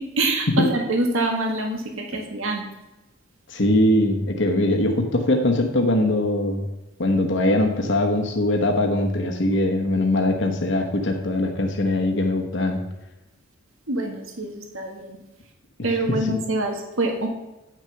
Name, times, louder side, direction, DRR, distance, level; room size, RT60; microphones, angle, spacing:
voice 1, 0.2-2.6 13.9-15.2 15.8-17.3, right 2 dB, 80° right, 2 dB, 1.8 m, -25 dB
voice 2, 3.5-6.7 7.0-12.8, left 1 dB, 60° left, 2 dB, 1.1 m, -21 dB
9.0 x 6.2 x 5.8 m, 1.0 s
head